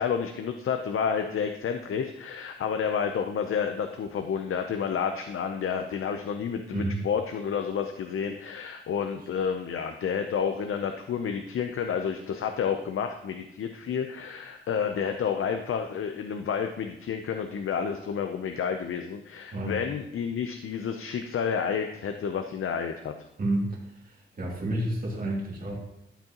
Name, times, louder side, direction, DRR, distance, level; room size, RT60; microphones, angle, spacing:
voice 1, 0.0-23.1, left 7 dB, 90° left, 6 dB, 0.6 m, -30 dB
voice 2, 24.0-25.7, right 1 dB, 40° right, -4 dB, 2.3 m, -30 dB
13.0 x 8.0 x 2.9 m, 0.79 s
wide cardioid pair, 145°, 21 cm